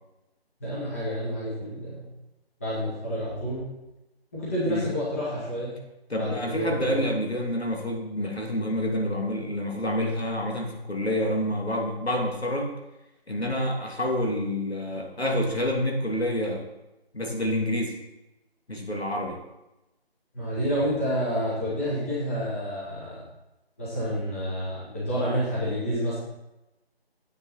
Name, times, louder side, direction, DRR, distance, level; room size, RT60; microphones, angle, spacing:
voice 1, 0.6-2.1 2.6-3.7 4.3-5.7 6.2-7.1 20.3-23.2 23.8-26.2, equal, 15° left, -8 dB, 1.7 m, -29 dB
voice 2, 6.1-12.7 13.3-16.7 17.1-17.9 18.7-19.4, equal, 80° left, 0 dB, 2.6 m, -28 dB
9.8 x 7.8 x 4.3 m, 0.95 s
figure-of-eight pair, 165°, 31 cm